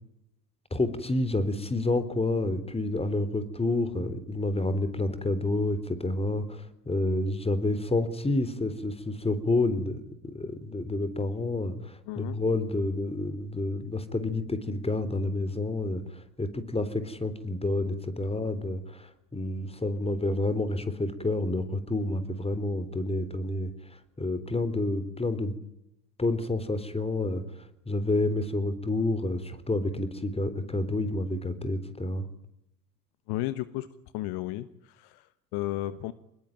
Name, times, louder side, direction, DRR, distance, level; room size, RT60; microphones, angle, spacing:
voice 1, 0.7-23.7 24.2-25.6 26.2-27.4 27.9-32.3, left 2 dB, 10° left, 13 dB, 3.7 m, -29 dB
voice 2, 12.1-12.4 33.3-33.9 34.1-36.1, left 16 dB, 55° left, 15 dB, 1.3 m, -34 dB
26.0 x 21.0 x 9.1 m, 0.83 s
figure-of-eight pair, 65°, 48 cm